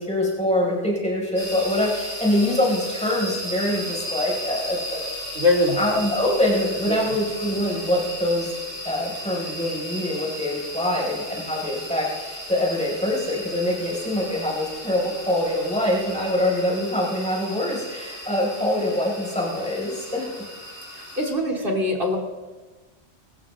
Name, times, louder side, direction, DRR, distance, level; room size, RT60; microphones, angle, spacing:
voice 1, 0.0-5.0 5.8-8.5 8.8-20.3, left 1 dB, 5° left, -4 dB, 5.4 m, -24 dB
sound 1, 1.4-21.3, equal, 80° left, 7.1 m, -35 dB
voice 2, 5.3-5.8 6.9-7.1 20.9-22.2, left 2 dB, 55° right, 0 dB, 3.1 m, -22 dB
25.0 x 14.5 x 3.7 m, 1.2 s
omnidirectional pair, 1.1 m